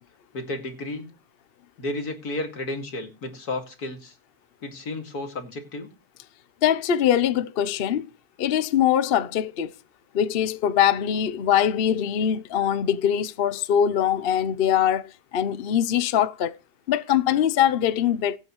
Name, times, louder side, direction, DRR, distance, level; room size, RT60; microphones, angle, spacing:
voice 1, 0.3-1.1 1.8-4.1 4.6-5.9, left 2 dB, 80° left, 2.8 m, -32 dB
voice 2, 6.6-8.1 8.4-9.7 10.1-16.6 16.9-18.4, left 9 dB, 50° left, 0.7 m, -22 dB
20.5 x 8.0 x 3.0 m
omnidirectional pair, 1.6 m